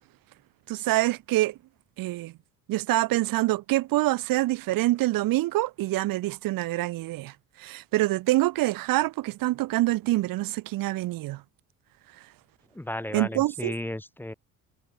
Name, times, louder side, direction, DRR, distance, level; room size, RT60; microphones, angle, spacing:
voice 1, 0.7-1.6 2.0-2.3 2.7-11.4 13.1-13.7, right 17 dB, 85° right, 2.1 m, -26 dB
voice 2, 12.8-14.3, left 1 dB, 5° left, 2.0 m, -34 dB
cardioid pair, 130°, 33 cm